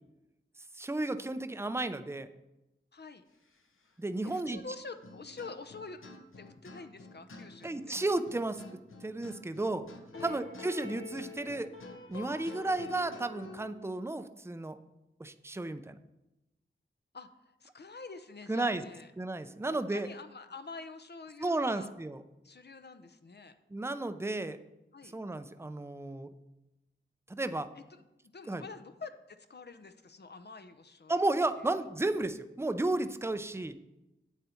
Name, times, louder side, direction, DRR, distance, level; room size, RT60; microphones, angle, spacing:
voice 1, 0.8-2.3 4.0-4.6 7.6-8.6 9.0-9.9 10.2-11.7 12.1-14.8 15.2-16.0 18.5-18.8 19.2-20.1 21.4-22.2 23.7-24.6 25.1-26.3 27.3-27.7 28.5-28.6 31.1-33.7, right 2 dB, 10° right, 10 dB, 0.5 m, -33 dB
voice 2, 2.9-3.2 4.2-6.0 6.4-8.0 10.1-10.4 17.1-17.3 17.6-19.1 19.7-21.9 22.4-23.5 24.9-25.1 27.7-31.3 31.6-31.7, left 4 dB, 55° left, 9 dB, 0.7 m, -47 dB
sound 1, 5.0-13.7, left 3 dB, 75° left, 1.0 m, -47 dB
9.1 x 8.2 x 4.4 m, 0.95 s
wide cardioid pair, 70°, 21 cm